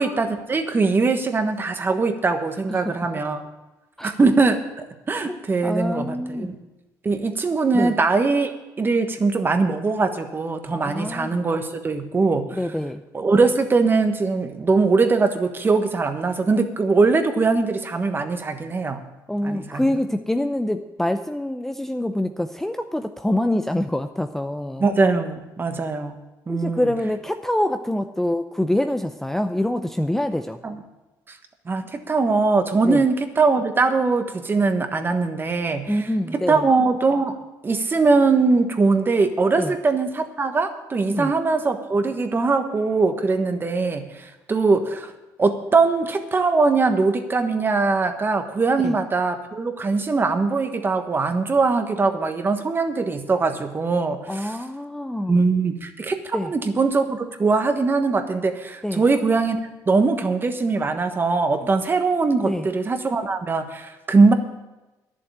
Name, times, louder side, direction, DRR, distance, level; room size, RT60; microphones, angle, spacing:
voice 1, 0.0-3.4 4.0-4.6 5.1-6.6 7.0-8.5 8.8-12.5 13.1-19.0 19.4-19.8 24.8-26.2 26.5-26.9 30.6-30.8 31.3-31.4 31.7-37.4 37.6-45.1 45.4-54.5 55.3-59.6 59.9-64.3, right 4 dB, 30° right, 7 dB, 1.3 m, -21 dB
voice 2, 5.6-6.5 7.7-7.9 10.8-11.4 12.5-13.0 19.3-24.8 26.5-30.6 32.8-33.0 35.9-36.6 39.6-39.7 41.1-41.3 48.8-49.0 54.3-55.4 56.3-56.5 58.8-59.0 62.5-62.7, left 1 dB, 5° left, 7 dB, 0.6 m, -25 dB
11.0 x 7.4 x 8.7 m, 1.1 s
cardioid pair, 100°, 8 cm